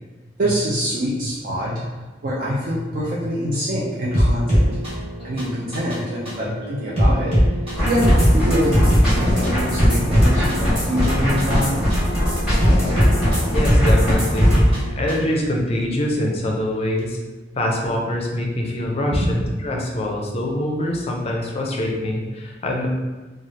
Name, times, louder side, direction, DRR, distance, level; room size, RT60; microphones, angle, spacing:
voice 1, 0.4-4.8 5.2-7.6 7.9-11.9 19.2-19.4 19.8-19.9, equal, 50° right, -6 dB, 0.4 m, -25 dB
sound 1, 4.1-15.3, equal, 35° right, 1.2 m, -20 dB
sound 2, 7.8-14.6, equal, 5° right, 1.1 m, -21 dB
voice 2, 13.5-17.2 17.6-22.9, left 1 dB, 35° left, 0 dB, 0.4 m, -24 dB
3.1 x 2.3 x 2.6 m, 1.2 s
head